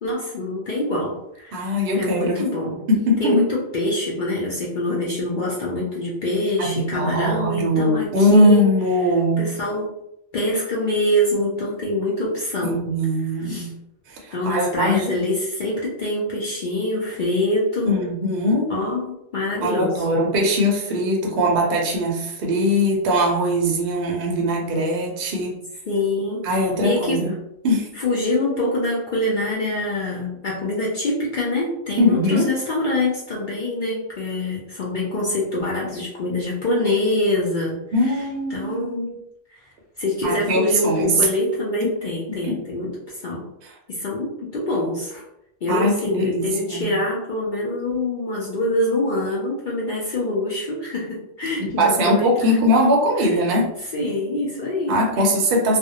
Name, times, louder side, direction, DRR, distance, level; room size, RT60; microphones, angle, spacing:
voice 1, 0.0-2.8 3.2-8.7 9.4-9.9 10.3-12.9 13.4-13.7 14.3-18.0 18.7-20.0 25.9-27.2 27.9-38.1 38.5-39.1 39.5-39.6 40.0-43.4 43.9-45.2 45.6-52.6 53.2-53.4 53.8-55.2, left 1 dB, 60° left, -4 dB, 0.5 m, -25 dB
voice 2, 1.5-2.4 2.9-3.5 6.6-9.4 12.6-13.7 14.1-15.1 17.9-18.7 19.6-25.6 26.4-27.3 27.6-27.9 32.0-32.5 37.9-38.9 40.2-41.2 41.8-41.9 42.4-42.6 45.7-46.9 51.6-53.8 54.9-55.8, equal, 60° right, -1 dB, 0.7 m, -20 dB
2.5 x 2.0 x 2.7 m, 0.81 s
omnidirectional pair, 1.3 m